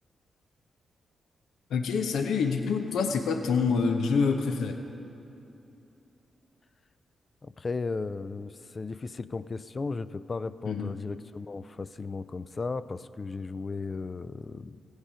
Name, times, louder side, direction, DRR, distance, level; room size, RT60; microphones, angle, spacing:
voice 1, 1.7-4.8 10.6-10.9, left 5 dB, 85° left, 5 dB, 0.7 m, -26 dB
voice 2, 7.4-14.8, left 4 dB, 40° left, 15 dB, 0.4 m, -35 dB
15.5 x 8.2 x 5.0 m, 2.8 s
cardioid pair, 65°, 0 cm